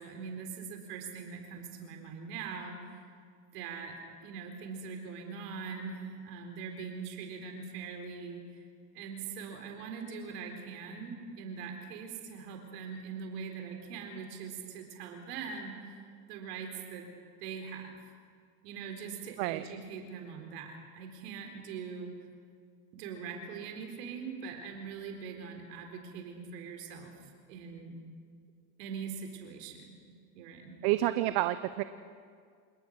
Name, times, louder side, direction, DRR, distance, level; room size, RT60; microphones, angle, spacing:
voice 1, 0.0-3.0 3.5-8.4 8.9-16.0 16.3-17.1 17.4-17.9 18.6-22.2 22.9-27.1 27.5-27.9 28.8-30.0 30.3-30.8, right 5 dB, 75° right, 3 dB, 4.2 m, -42 dB
voice 2, 30.8-31.8, right 15 dB, 55° right, 12 dB, 1.0 m, -29 dB
27.5 x 18.5 x 6.4 m, 2.1 s
supercardioid pair, 115°, 48 cm